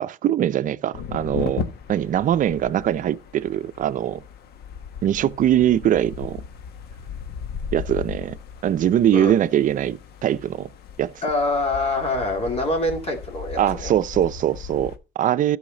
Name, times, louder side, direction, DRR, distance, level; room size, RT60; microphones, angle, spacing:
voice 1, 0.0-1.6 1.9-4.2 5.0-6.4 7.7-8.4 8.6-10.7 11.0-11.1 13.6-15.6, right 11 dB, 50° right, 0.6 m, -22 dB
sound 1, 0.9-15.0, left 6 dB, 70° left, 1.2 m, -36 dB
voice 2, 11.2-13.9, left 2 dB, 35° left, 2.5 m, -25 dB
13.0 x 6.4 x 3.9 m
cardioid pair, 110°, 17 cm